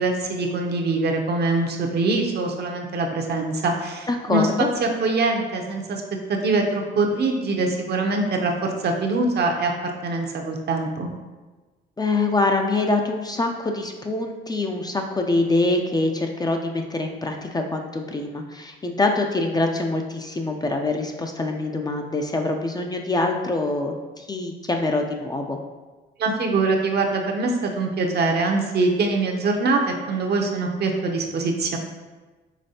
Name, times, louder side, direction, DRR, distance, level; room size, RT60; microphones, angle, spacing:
voice 1, 0.0-6.0 6.3-11.1 26.2-31.8, right 3 dB, 55° right, 2 dB, 0.7 m, -23 dB
voice 2, 4.1-4.5 12.0-25.6, left 2 dB, 20° left, 3 dB, 0.4 m, -24 dB
5.1 x 3.3 x 2.8 m, 1.2 s
cardioid pair, 90°, 20 cm